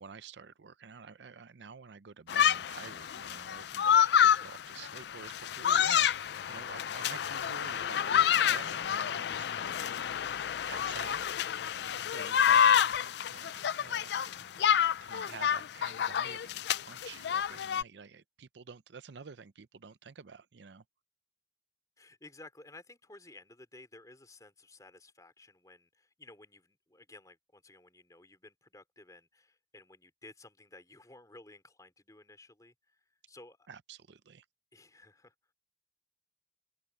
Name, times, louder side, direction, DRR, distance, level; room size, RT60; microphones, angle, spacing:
voice 1, 0.0-9.9 10.7-11.2 11.9-12.8 13.3-14.2 15.0-20.8 33.7-34.4, right 5 dB, 75° right, 0.6 m, -49 dB
sound 1, 2.3-17.8, left 8 dB, 65° left, 0.4 m, -28 dB
voice 2, 14.2-14.7 22.0-33.6 34.7-35.3, left 2 dB, 20° left, 3.7 m, -55 dB
open air
head